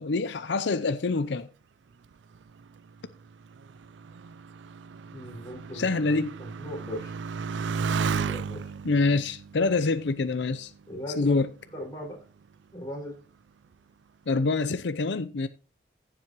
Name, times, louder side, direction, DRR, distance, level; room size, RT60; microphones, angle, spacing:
voice 1, 0.0-1.5 5.7-6.3 8.8-10.7 11.2-11.5 14.3-15.5, left 3 dB, 75° left, 0.6 m, -26 dB
Motorcycle, 2.1-11.1 11.8-12.4, right 5 dB, 80° right, 0.4 m, -35 dB
voice 2, 5.1-7.2 8.2-8.7 10.9-11.4 11.7-12.2 12.7-13.2, equal, 20° left, 5.2 m, -38 dB
15.5 x 7.5 x 3.0 m
head